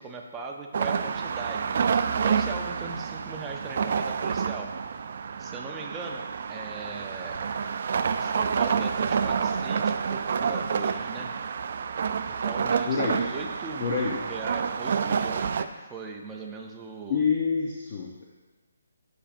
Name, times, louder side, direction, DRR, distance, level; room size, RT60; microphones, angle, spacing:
voice 1, 0.0-4.7 5.4-7.4 8.2-11.3 12.2-17.2, right 3 dB, 10° right, 0 dB, 0.6 m, -39 dB
sound 1, 0.7-15.6, right 6 dB, 50° right, 0.3 m, -28 dB
voice 2, 12.9-13.2 13.8-14.2 17.1-18.2, left 5 dB, 40° left, -2 dB, 0.8 m, -27 dB
9.7 x 6.2 x 2.6 m, 1.3 s
hypercardioid pair, 165°, 0 cm